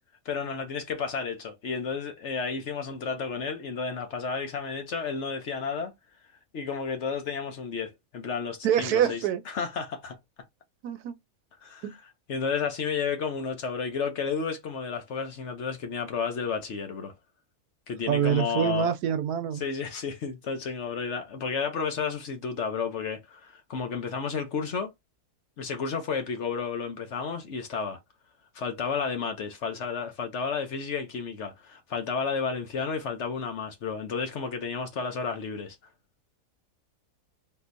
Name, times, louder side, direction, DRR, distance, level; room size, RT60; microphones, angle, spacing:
voice 1, 0.2-5.9 6.5-10.2 11.6-11.9 12.3-17.1 17.9-18.9 19.6-24.9 25.6-28.0 28.5-35.8, left 5 dB, 55° left, 0.9 m, -32 dB
voice 2, 8.6-9.4 10.8-11.1 11.8-11.9 18.1-19.6, right 9 dB, 80° right, 1.2 m, -25 dB
3.7 x 2.8 x 2.5 m
omnidirectional pair, 1.6 m